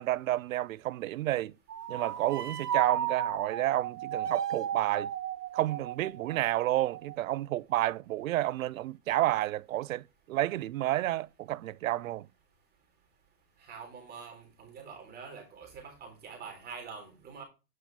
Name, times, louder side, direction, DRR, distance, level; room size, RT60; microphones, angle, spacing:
voice 1, 0.0-1.5 1.9-5.1 5.5-12.3, right 15 dB, 60° right, 0.6 m, -30 dB
sound 1, 1.7-7.2, right 9 dB, 85° right, 1.2 m, -34 dB
voice 2, 13.6-17.4, right 5 dB, 20° right, 3.7 m, -45 dB
9.4 x 5.7 x 4.6 m
hypercardioid pair, 140°, 46 cm